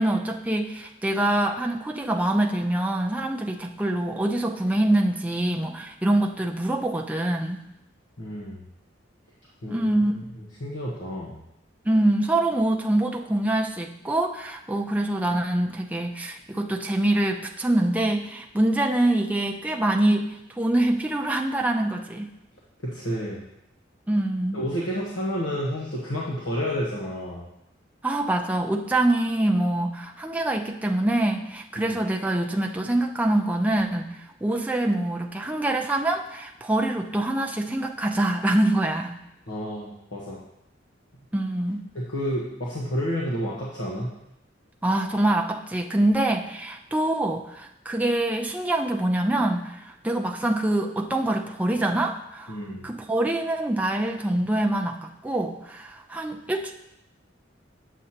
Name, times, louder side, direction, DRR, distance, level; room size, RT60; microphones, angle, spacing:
voice 1, 0.0-7.6 9.7-10.1 11.9-20.3 20.6-22.3 24.1-24.6 28.0-34.1 34.4-39.1 41.3-41.9 44.8-52.6 52.8-56.7, right 1 dB, 10° right, 1 dB, 0.5 m, -25 dB
voice 2, 8.2-8.6 9.6-9.9 10.4-11.4 22.8-23.4 24.5-27.5 31.8-32.0 39.5-40.4 41.9-44.1 52.5-52.9, equal, 75° left, -5 dB, 1.2 m, -30 dB
8.0 x 7.4 x 2.9 m, 0.82 s
head